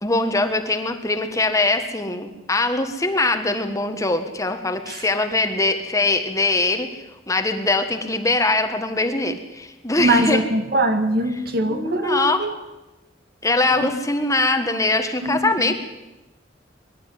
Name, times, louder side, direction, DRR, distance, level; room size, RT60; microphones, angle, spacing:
voice 1, 0.0-10.4 11.7-12.5 13.4-15.7, left 2 dB, 20° left, 7 dB, 1.5 m, -22 dB
voice 2, 10.0-12.5 13.7-13.9 15.2-15.4 15.7-15.8, right 1 dB, 55° right, 7 dB, 1.9 m, -22 dB
23.0 x 12.0 x 9.5 m, 1.0 s
head